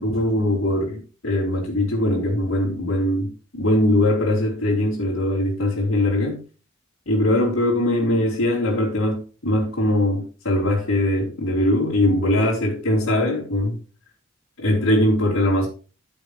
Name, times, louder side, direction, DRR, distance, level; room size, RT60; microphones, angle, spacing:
voice 1, 0.0-6.4 7.1-13.8 14.6-15.7, left 1 dB, 85° left, 4.1 m, -21 dB
15.0 x 7.4 x 3.3 m
head